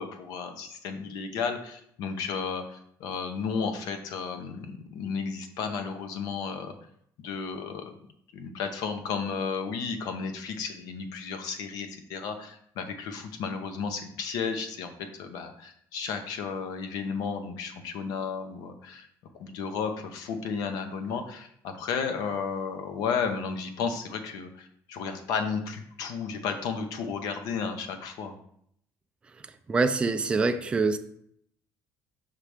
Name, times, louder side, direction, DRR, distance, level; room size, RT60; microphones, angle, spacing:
voice 1, 0.0-6.8 7.2-8.0 8.3-14.9 15.2-19.1 19.4-28.4, left 5 dB, 75° left, 7 dB, 0.8 m, -33 dB
voice 2, 29.7-31.0, right 3 dB, 15° right, 8 dB, 0.3 m, -24 dB
5.7 x 3.3 x 5.0 m, 0.68 s
cardioid pair, 170°, 7 cm